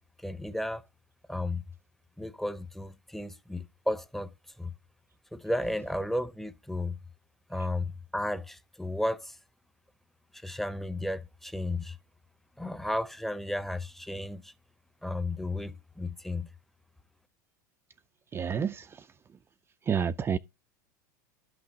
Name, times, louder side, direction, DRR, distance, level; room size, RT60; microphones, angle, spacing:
voice 1, 0.2-0.8 1.3-1.6 2.2-4.7 5.3-7.0 7.5-9.4 10.3-12.0 12.6-14.5 15.0-16.5, left 1 dB, ahead, 0.8 m, -33 dB
voice 2, 18.3-19.1 19.8-20.4, right 7 dB, 25° right, 0.5 m, -30 dB
12.0 x 6.0 x 4.0 m
hypercardioid pair, 90°, 10 cm